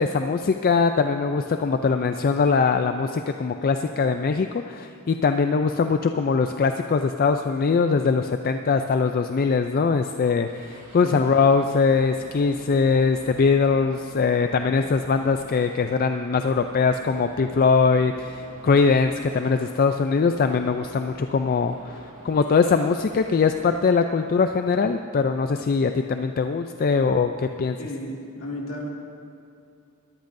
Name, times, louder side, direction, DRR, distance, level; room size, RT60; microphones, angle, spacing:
voice 1, 0.0-27.8, left 5 dB, 40° left, 7 dB, 0.4 m, -22 dB
sound 1, 10.5-23.7, right 1 dB, 40° right, 3.1 m, -47 dB
voice 2, 27.8-28.9, equal, 70° left, -2 dB, 2.3 m, -33 dB
21.0 x 13.5 x 2.6 m, 2.5 s
head